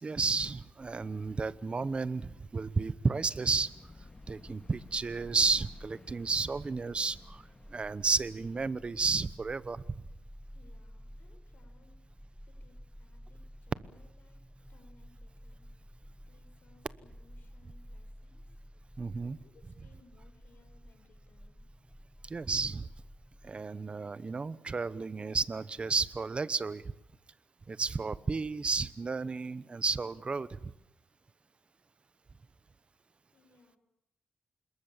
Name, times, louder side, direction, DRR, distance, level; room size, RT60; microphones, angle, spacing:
voice 1, 0.0-3.7 4.3-7.4 7.7-9.8 19.0-19.4 22.3-22.9 23.4-26.8 27.7-30.7, right 4 dB, 35° right, 17 dB, 1.0 m, -32 dB
sound 1, 0.7-6.5, left 2 dB, 20° left, 2.9 m, -57 dB
sound 2, 3.4-9.0, left 3 dB, 35° left, 1.9 m, -59 dB
sound 3, 4.7-23.6, equal, ahead, 1.4 m, -52 dB
voice 2, 10.5-12.0 12.5-14.4 14.7-18.6 19.2-21.7 33.3-33.8, left 3 dB, 85° left, 6 dB, 5.9 m, -65 dB
26.5 x 21.5 x 7.3 m, 0.82 s
cardioid pair, 105°, 3 cm